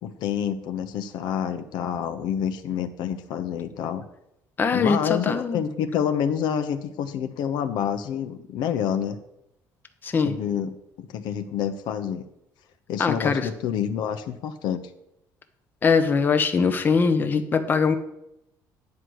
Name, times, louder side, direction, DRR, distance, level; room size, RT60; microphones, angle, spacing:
voice 1, 0.0-4.0 4.7-9.2 10.2-12.2 12.9-14.8, left 8 dB, 70° left, 8 dB, 0.8 m, -28 dB
voice 2, 4.6-5.6 10.0-10.3 13.0-13.5 15.8-18.0, left 5 dB, 25° left, 8 dB, 0.8 m, -22 dB
9.7 x 4.9 x 7.8 m, 0.82 s
cardioid pair, 145°, 8 cm